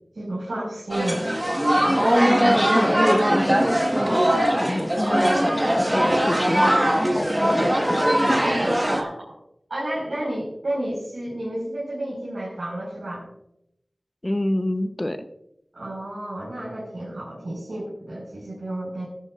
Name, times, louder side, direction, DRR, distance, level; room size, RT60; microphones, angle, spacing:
voice 1, 0.2-1.3 8.4-9.1 9.7-13.2 15.7-19.1, right 1 dB, 85° right, -7 dB, 5.2 m, -31 dB
sound 1, 0.9-9.0, equal, 20° right, 1.6 m, -20 dB
voice 2, 1.8-3.6 4.1-6.6 7.0-8.1 14.2-15.2, left 1 dB, 30° left, 9 dB, 0.9 m, -28 dB
18.0 x 11.0 x 2.6 m, 0.81 s
wide cardioid pair, 55°, 0 cm